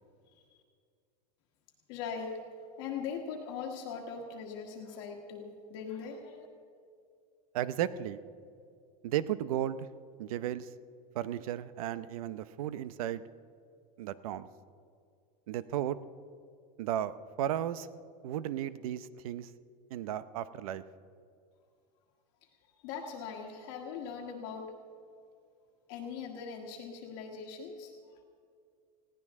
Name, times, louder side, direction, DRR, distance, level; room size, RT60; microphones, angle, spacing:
voice 1, 1.9-2.4 2.8-6.5 22.8-24.7 25.9-28.2, left 6 dB, 40° left, 0 dB, 1.5 m, -40 dB
voice 2, 7.5-8.2 9.0-9.9 10.2-10.7 11.1-13.2 14.0-14.5 15.5-16.0 16.8-17.1 17.4-17.9 18.2-19.5 19.9-20.8, right 11 dB, 60° right, 15 dB, 0.7 m, -34 dB
20.5 x 17.0 x 3.7 m, 2.3 s
supercardioid pair, 175°, 21 cm